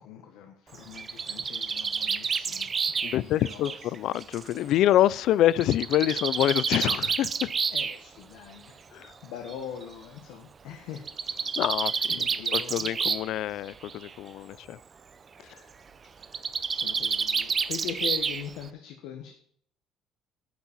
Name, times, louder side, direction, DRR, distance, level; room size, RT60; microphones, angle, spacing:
voice 1, 0.0-2.7 3.0-3.7 7.7-11.1 12.1-12.9 16.4-19.3, left 9 dB, 85° left, 4 dB, 1.4 m, -41 dB
Bird, 0.7-4.5 5.6-8.0 9.0-9.1 9.5-9.6 9.8-9.9 11.0-13.4 13.7-14.1 16.2-18.7, right 5 dB, 30° right, 0.6 m, -29 dB
voice 2, 3.0-7.5 8.9-9.1 11.6-12.3 12.5-14.8, left 13 dB, 60° left, 21 dB, 0.4 m, -26 dB
9.5 x 7.1 x 7.3 m, 0.62 s
cardioid pair, 130°, 0 cm